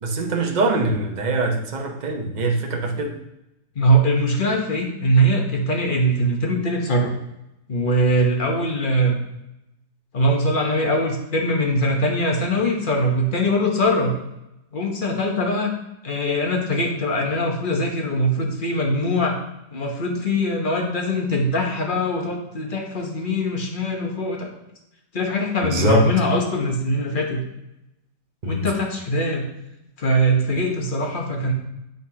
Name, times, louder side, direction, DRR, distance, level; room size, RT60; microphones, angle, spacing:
voice 1, 0.0-3.1 25.7-26.1 28.4-28.7, right 2 dB, 40° right, 1 dB, 0.7 m, -22 dB
voice 2, 3.7-7.1 7.7-9.2 10.1-14.1 14.7-15.7 16.0-19.4 19.7-24.5 25.1-27.4 28.4-29.4 30.0-31.5, equal, 40° left, 1 dB, 0.9 m, -22 dB
10.0 x 3.9 x 2.8 m, 0.89 s
omnidirectional pair, 1.8 m